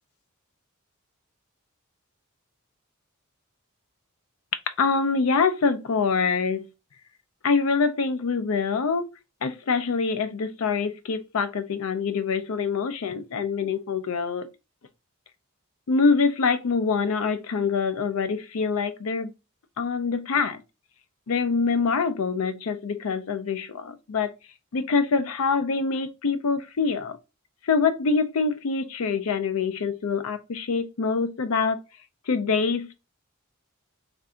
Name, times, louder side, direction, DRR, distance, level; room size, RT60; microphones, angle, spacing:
voice 1, 4.8-6.7 7.4-9.1 9.4-14.5 15.9-19.3 19.8-20.6 21.3-24.3 24.7-27.2 27.6-31.8 32.3-33.0, left 5 dB, 70° left, 0.5 m, -25 dB
3.4 x 2.6 x 3.6 m
head